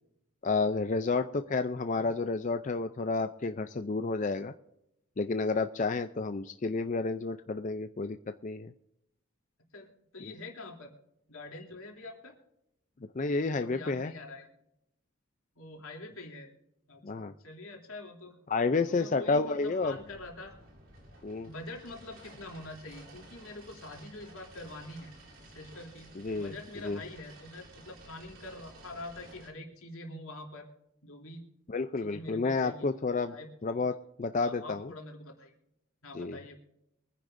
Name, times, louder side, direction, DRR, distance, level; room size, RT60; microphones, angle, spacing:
voice 1, 0.4-4.5 5.2-8.2 8.4-8.7 10.2-10.3 13.1-14.1 17.0-17.3 18.5-20.0 21.2-21.5 26.2-26.5 26.8-27.0 31.7-33.3 33.6-34.9 36.1-36.4, left 3 dB, 35° left, 9 dB, 0.4 m, -30 dB
voice 2, 10.1-10.9 11.3-12.4 13.4-14.5 15.5-16.5 16.9-18.4 18.9-20.6 21.4-25.1 25.5-26.1 26.3-30.7 31.0-31.4 32.0-32.9 33.3-33.5 34.4-35.5 36.0-36.6, left 2 dB, 80° left, 1 dB, 3.0 m, -45 dB
sound 1, 19.8-29.5, right 1 dB, 70° right, 3.3 m, -53 dB
24.0 x 10.0 x 2.6 m, 0.83 s
head